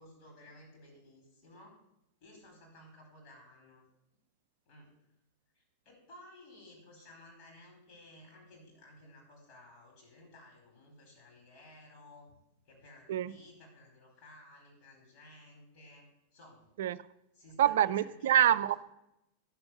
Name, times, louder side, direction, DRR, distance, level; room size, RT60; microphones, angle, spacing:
voice 1, 0.0-1.7 2.2-3.8 4.7-4.9 5.5-12.3 12.6-16.7 17.3-18.5, left 1 dB, 40° left, 1 dB, 4.6 m, -56 dB
voice 2, 17.6-18.7, right 11 dB, 55° right, 15 dB, 0.4 m, -26 dB
10.5 x 7.0 x 6.5 m, 0.85 s
figure-of-eight pair, 90°, 0 cm